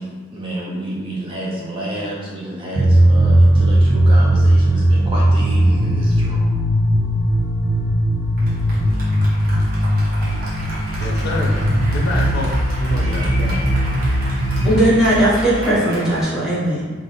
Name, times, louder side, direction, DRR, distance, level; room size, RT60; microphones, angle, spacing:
voice 1, 0.0-6.5 13.0-13.6, right 1 dB, 25° right, -5 dB, 0.4 m, -29 dB
sound 1, 2.7-14.7, right 1 dB, 80° right, 0.8 m, -17 dB
sound 2, 3.1-15.7, left 1 dB, 90° left, 0.5 m, -30 dB
Applause, 8.4-16.2, right 1 dB, 40° right, 1.0 m, -34 dB
voice 2, 11.0-11.6 11.9-12.5 12.8-13.6, left 2 dB, 50° left, -3 dB, 0.6 m, -27 dB
voice 3, 14.6-16.8, right 1 dB, ahead, -10 dB, 1.0 m, -17 dB
3.3 x 2.5 x 3.8 m, 1.4 s
head